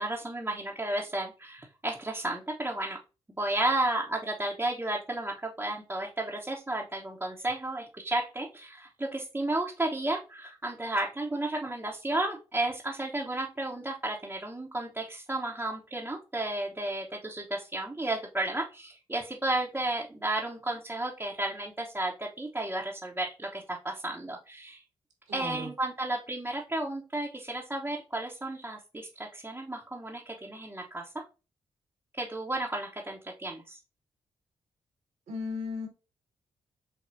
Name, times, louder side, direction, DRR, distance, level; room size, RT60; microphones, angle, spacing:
voice 1, 0.0-3.0 3.4-24.8 25.3-31.2 32.2-33.8, right 2 dB, 15° right, 1.0 m, -33 dB
voice 2, 25.3-25.7 35.3-35.9, left 3 dB, 75° right, 1.6 m, -35 dB
6.7 x 2.3 x 2.6 m
hypercardioid pair, 40°, 12 cm